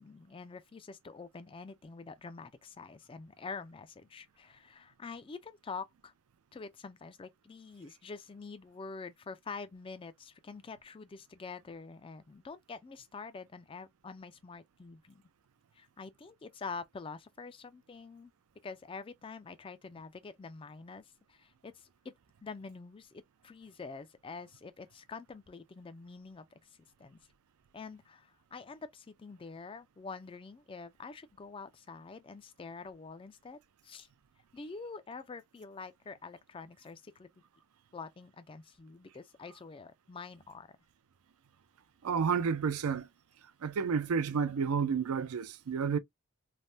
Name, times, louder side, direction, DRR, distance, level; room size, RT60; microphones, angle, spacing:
voice 1, 0.0-6.1 6.5-15.2 15.7-18.3 18.6-22.1 22.4-26.6 27.0-27.2 27.7-34.1 34.5-37.3 37.9-40.7, left 4 dB, 25° left, 0.3 m, -46 dB
voice 2, 42.0-43.1 43.6-46.0, right 6 dB, 80° right, 0.4 m, -30 dB
3.3 x 2.1 x 2.6 m
head